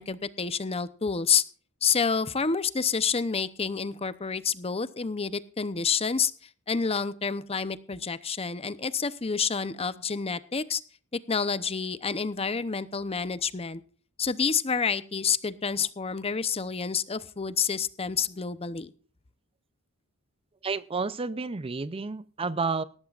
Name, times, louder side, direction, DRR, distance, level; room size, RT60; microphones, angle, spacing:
voice 1, 0.0-1.4 1.8-6.3 6.7-10.8 11.1-13.8 14.2-18.9, left 6 dB, 30° left, 0.7 m, -28 dB
voice 2, 20.6-22.8, right 4 dB, 25° right, 0.5 m, -30 dB
18.5 x 13.5 x 2.5 m
head